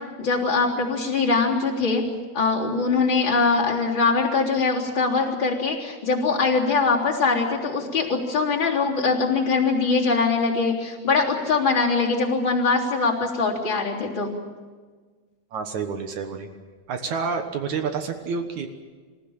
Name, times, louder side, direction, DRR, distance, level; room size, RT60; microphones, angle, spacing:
voice 1, 0.2-2.1 2.3-14.3, left 4 dB, 30° left, -3 dB, 3.9 m, -22 dB
voice 2, 15.5-16.5 16.9-18.7, right 5 dB, 60° right, 6 dB, 2.2 m, -28 dB
27.0 x 16.0 x 8.8 m, 1.5 s
omnidirectional pair, 4.7 m